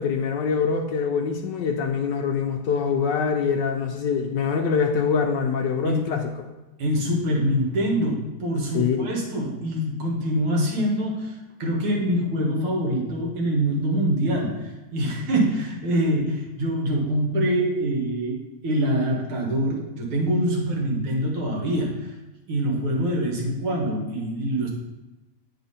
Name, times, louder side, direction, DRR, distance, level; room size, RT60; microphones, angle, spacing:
voice 1, 0.0-6.2 8.7-9.1, left 6 dB, 70° left, 4 dB, 1.1 m, -24 dB
voice 2, 5.8-6.2 6.8-18.4 18.6-22.1 22.5-24.7, equal, 80° right, -1 dB, 2.3 m, -24 dB
8.9 x 4.3 x 4.1 m, 1.1 s
omnidirectional pair, 2.3 m